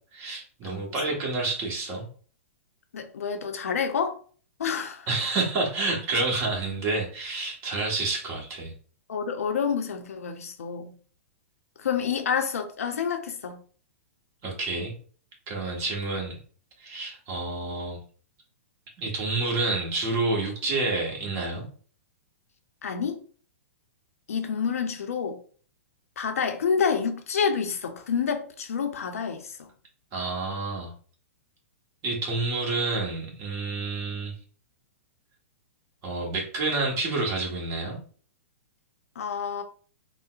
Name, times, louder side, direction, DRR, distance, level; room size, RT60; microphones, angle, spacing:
voice 1, 0.1-2.1 5.1-8.7 14.4-14.9 15.5-16.4 16.8-18.0 19.0-21.7 30.1-30.9 32.0-34.3 36.0-38.0, right 3 dB, 35° right, 1.3 m, -29 dB
voice 2, 2.9-4.2 4.6-5.1 9.1-10.9 11.8-13.6 22.8-23.2 24.3-25.4 26.2-29.7 39.2-39.6, left 6 dB, 75° left, 0.6 m, -28 dB
3.8 x 2.1 x 2.4 m
hypercardioid pair, 115°, 8 cm